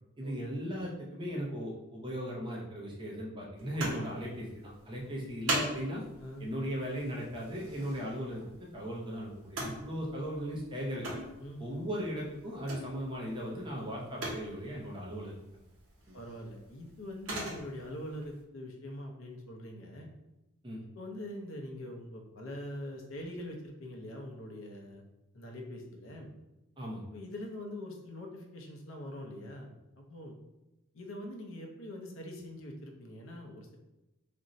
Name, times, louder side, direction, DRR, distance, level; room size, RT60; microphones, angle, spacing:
voice 1, 0.2-6.0 6.4-11.2 11.6-15.6 16.1-16.2 20.6-20.8 26.8-27.1, equal, 20° right, -3 dB, 0.5 m, -37 dB
sound 1, 3.6-18.4, right 1 dB, 80° right, 0.9 m, -42 dB
voice 2, 16.1-20.1 20.9-25.0 25.3-26.3 27.0-30.4 30.9-33.8, left 1 dB, 60° left, 1 dB, 0.5 m, -43 dB
2.5 x 2.1 x 3.8 m, 0.99 s
head